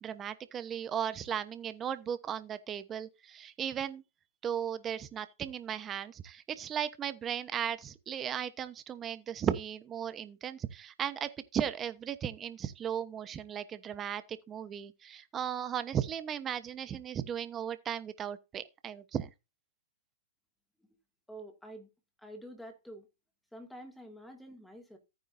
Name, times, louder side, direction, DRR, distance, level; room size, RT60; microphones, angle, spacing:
voice 1, 0.0-4.0 4.4-19.3, right 9 dB, 20° right, 1.1 m, -36 dB
voice 2, 21.3-21.9 22.2-23.1 23.5-25.0, right 1 dB, ahead, 2.3 m, -48 dB
14.5 x 9.3 x 2.7 m
hypercardioid pair, 135°, 0 cm